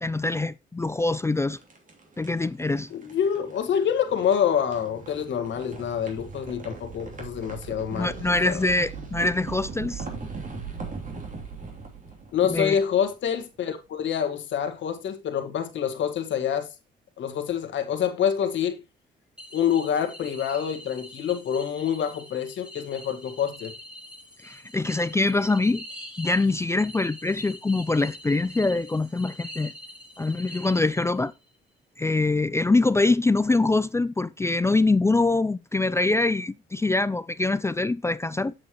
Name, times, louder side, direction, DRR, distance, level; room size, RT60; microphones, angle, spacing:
voice 1, 0.0-1.6 2.2-2.9 7.9-10.0 12.5-12.8 24.4-25.8 26.2-29.7 30.2-31.3 32.0-38.5, left 2 dB, 15° left, 0.4 m, -24 dB
sound 1, 1.3-13.4, right 4 dB, 40° right, 2.9 m, -40 dB
voice 2, 2.9-8.5 12.3-16.7 17.2-18.8 19.5-23.7, left 8 dB, 70° left, 1.7 m, -26 dB
sound 2, 19.4-31.3, left 1 dB, 5° right, 3.0 m, -44 dB
7.9 x 7.7 x 3.0 m
cardioid pair, 90°, 20 cm